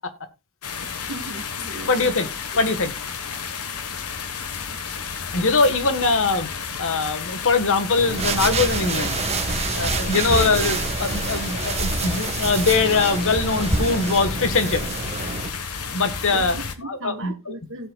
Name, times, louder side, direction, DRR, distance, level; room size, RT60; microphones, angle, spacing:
sound 1, 0.6-16.7, left 6 dB, 85° left, 1.3 m, -32 dB
voice 1, 1.1-2.3 2.8-2.9 10.1-10.6 16.3-17.9, right 1 dB, 60° right, 1.8 m, -37 dB
voice 2, 1.8-2.3 2.5-2.9 5.3-9.2 9.7-14.9 15.9-16.5 16.9-17.3, left 4 dB, 65° left, 1.4 m, -22 dB
sound 2, 8.0-15.5, right 3 dB, 30° right, 1.6 m, -26 dB
16.5 x 7.7 x 2.3 m
head